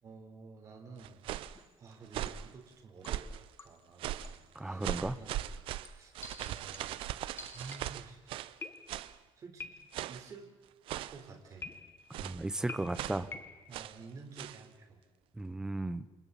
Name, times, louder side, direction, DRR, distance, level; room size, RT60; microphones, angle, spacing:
voice 1, 0.0-3.3 3.6-5.5 5.9-6.2 6.4-7.1 7.5-8.5 9.4-9.7 10.1-10.5 11.1-11.7 13.7-15.0, right 4 dB, 35° right, 3 dB, 3.9 m, -51 dB
sound 1, 1.0-1.6 2.1-2.5 3.0-3.4 4.0-4.4 4.8-8.6 8.9-9.2 9.9-10.3 10.9-11.3 12.1-12.5 12.9-13.3 13.7-14.0 14.3-14.6, right 12 dB, 70° right, 0.7 m, -39 dB
sound 2, 1.5-1.8 2.3-2.6 3.0-3.9 4.2-4.5 4.9-5.2 5.8-8.1 8.6-9.2 9.6-10.2 11.6-12.2 12.7-13.7, left 4 dB, 25° left, 1.5 m, -49 dB
voice 2, 4.5-5.1 12.2-13.3 15.4-16.0, right 2 dB, 5° right, 13 dB, 0.8 m, -35 dB
29.0 x 29.0 x 4.2 m, 1.3 s
cardioid pair, 165°, 9 cm